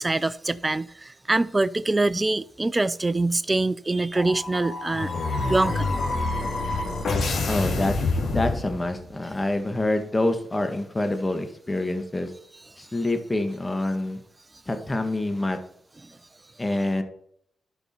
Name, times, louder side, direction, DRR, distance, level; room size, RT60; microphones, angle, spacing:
voice 1, 0.0-5.1 5.5-5.9 16.0-16.2, right 2 dB, 25° right, 0.5 m, -24 dB
sound 1, 4.1-9.1, left 3 dB, 65° left, 2.6 m, -27 dB
voice 2, 7.5-7.9 8.3-12.3 12.8-14.2 14.7-15.6 16.6-17.0, left 2 dB, 25° left, 1.8 m, -26 dB
12.0 x 5.4 x 4.5 m
supercardioid pair, 45°, 0 cm